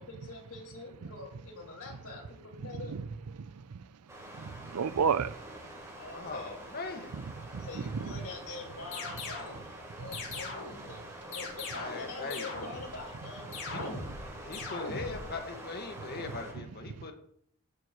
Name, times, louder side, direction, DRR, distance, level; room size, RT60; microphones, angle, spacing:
voice 1, 0.0-3.0 6.0-6.6 7.5-9.6 9.9-13.9, left 3 dB, 85° left, 5.2 m, -45 dB
sound 1, 4.1-16.5, right 1 dB, 15° right, 3.4 m, -47 dB
voice 2, 4.4-5.4 7.5-8.1 10.0-10.2, right 6 dB, 90° right, 0.5 m, -32 dB
voice 3, 6.0-7.1 11.7-12.5 13.7-13.8 14.4-17.1, left 3 dB, 45° left, 1.7 m, -40 dB
sound 2, 8.9-9.6 10.1-10.8 11.3-12.1 12.3-12.9 13.5-14.2 14.5-15.2, left 3 dB, 60° left, 5.0 m, -40 dB
16.0 x 9.3 x 3.1 m
head